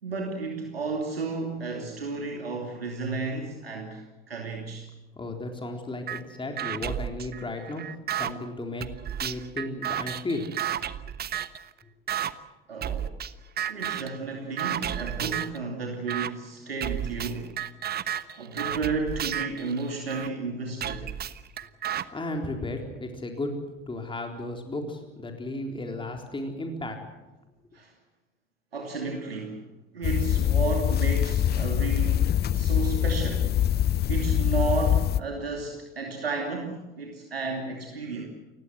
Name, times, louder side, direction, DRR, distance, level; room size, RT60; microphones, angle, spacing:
voice 1, 0.0-4.9 12.7-13.1 13.7-17.5 18.4-21.1 27.7-27.9 28.7-29.6 29.9-33.5 34.1-38.3, right 4 dB, 80° right, 1 dB, 2.8 m, -32 dB
voice 2, 5.2-8.9 9.2-10.5 22.1-23.6 23.9-27.0, left 2 dB, 15° left, 3 dB, 4.1 m, -34 dB
sound 1, 6.1-6.2 6.6-8.3 8.8-11.6 12.1-12.3 12.8-13.3 13.6-14.2 14.6-15.6 16.1-16.3 16.8-20.3 20.8-22.0, right 10 dB, 35° right, 1.2 m, -32 dB
sound 2, 30.0-35.2, left 11 dB, 35° left, 0.8 m, -24 dB
29.5 x 17.0 x 7.8 m, 1.1 s
figure-of-eight pair, 65°, 29 cm